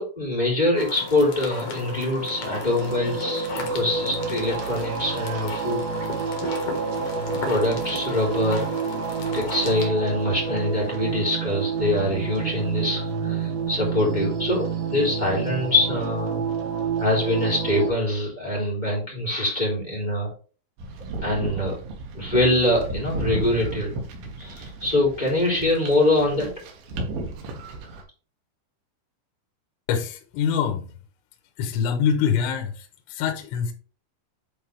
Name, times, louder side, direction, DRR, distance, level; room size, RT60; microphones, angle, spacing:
voice 1, 0.0-5.8 7.4-8.7 9.3-16.4 17.0-20.3 21.2-21.8 22.1-23.9 24.4-26.5, left 1 dB, 10° left, 2.6 m, -24 dB
sound 1, 0.7-9.9, left 3 dB, 65° left, 1.6 m, -35 dB
sound 2, 2.2-17.9, right 5 dB, 70° right, 3.7 m, -29 dB
sound 3, 20.8-28.0, right 2 dB, 85° right, 4.2 m, -34 dB
voice 2, 29.9-30.9 31.6-33.7, left 7 dB, 80° left, 3.5 m, -25 dB
10.5 x 4.1 x 3.4 m
omnidirectional pair, 5.4 m